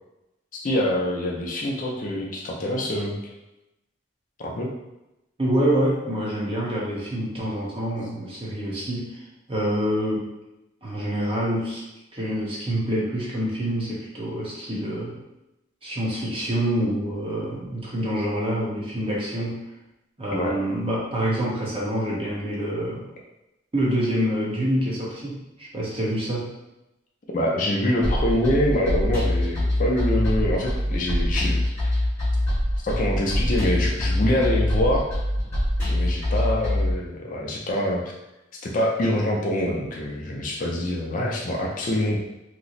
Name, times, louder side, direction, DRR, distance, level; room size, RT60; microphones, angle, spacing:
voice 1, 0.6-3.2 4.4-4.7 20.3-20.6 27.3-32.0 32.8-35.1 35.9-38.0 38.6-42.2, left 1 dB, 40° left, -2 dB, 0.4 m, -25 dB
voice 2, 5.4-9.2 9.5-10.3 10.8-11.8 12.1-15.2 15.8-19.6 20.2-23.0 23.7-26.5, right 1 dB, 30° right, -5 dB, 0.8 m, -26 dB
sound 1, 28.0-36.9, left 1 dB, 10° left, 1.0 m, -24 dB
2.9 x 2.0 x 3.9 m, 0.94 s
head